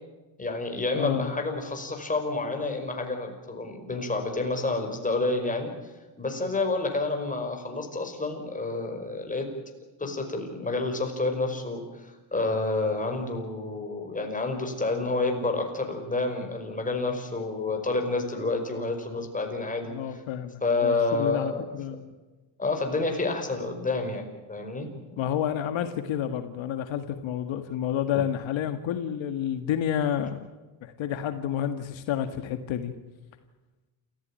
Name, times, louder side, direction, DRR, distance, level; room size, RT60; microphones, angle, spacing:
voice 1, 0.4-5.7 6.2-9.5 10.0-20.2 20.6-21.6 22.6-24.2 24.5-24.9, left 3 dB, 15° left, 3 dB, 5.4 m, -29 dB
voice 2, 0.9-1.3 10.1-10.2 19.9-22.1 25.2-30.4 30.8-32.9, left 9 dB, 70° left, 8 dB, 1.9 m, -30 dB
28.5 x 15.0 x 9.0 m, 1.2 s
cardioid pair, 130°, 47 cm